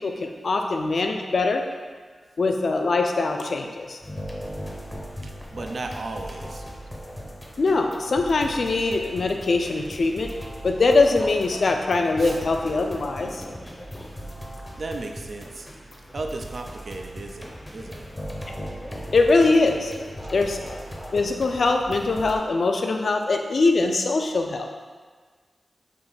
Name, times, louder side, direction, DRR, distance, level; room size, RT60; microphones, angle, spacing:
voice 1, 0.0-1.6 2.4-4.0 7.6-10.3 10.6-13.4 19.1-19.9 20.3-20.6 21.1-24.7, left 3 dB, 65° left, 3 dB, 0.3 m, -22 dB
sound 1, 4.0-22.4, equal, 15° left, 0.6 m, -38 dB
voice 2, 5.2-6.6 12.2-12.4 14.8-15.7 16.1-18.1, right 2 dB, 60° right, 4 dB, 0.3 m, -35 dB
3.5 x 2.7 x 3.8 m, 1.5 s
wide cardioid pair, 85°, 0 cm